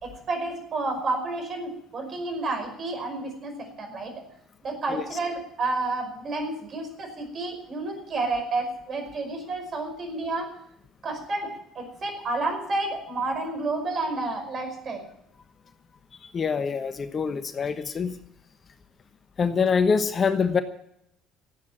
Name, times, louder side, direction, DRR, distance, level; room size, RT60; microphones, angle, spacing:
voice 1, 0.0-4.1 4.6-10.5 11.0-15.0, right 2 dB, 45° right, 4 dB, 5.4 m, -30 dB
voice 2, 16.3-18.1 19.4-20.6, left 5 dB, 40° left, 10 dB, 1.1 m, -24 dB
14.5 x 8.7 x 8.8 m, 0.75 s
hypercardioid pair, 60°, 0 cm